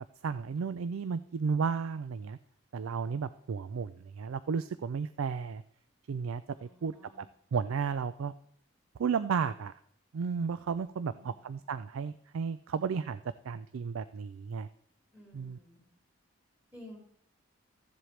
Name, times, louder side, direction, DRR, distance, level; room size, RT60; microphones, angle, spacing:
voice 1, 0.2-2.4 2.7-5.6 6.1-7.3 7.5-8.3 9.0-9.7 10.1-14.7 15.3-15.6, right 6 dB, 85° right, 13 dB, 0.4 m, -33 dB
voice 2, 6.6-7.2 11.0-11.5 15.1-15.8 16.7-17.0, left 1 dB, 5° right, -1 dB, 2.4 m, -53 dB
14.0 x 7.6 x 3.3 m, 0.67 s
head